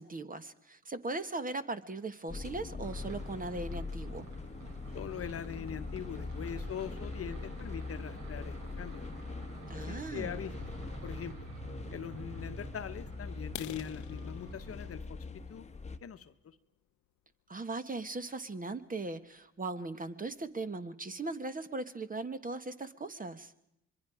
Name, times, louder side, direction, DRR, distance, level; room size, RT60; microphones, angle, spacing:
voice 1, 0.0-4.3 9.7-10.4 17.5-23.5, right 3 dB, 25° right, 11 dB, 1.4 m, -39 dB
sound 1, 2.3-16.0, left 3 dB, 20° left, 1.2 m, -42 dB
sound 2, 2.8-14.9, right 4 dB, 60° right, 3.6 m, -50 dB
voice 2, 4.9-9.0 9.8-10.5 11.0-11.5 11.9-15.7 16.0-16.6, left 8 dB, 45° left, 10 dB, 1.2 m, -42 dB
sound 3, 13.4-17.2 17.7-17.9 18.4-18.5 18.9-19.1 19.4-19.5 19.9-20.0 20.3-20.8, left 13 dB, 65° left, 0.9 m, -49 dB
26.0 x 22.5 x 4.9 m, 0.80 s
supercardioid pair, 80°, 32 cm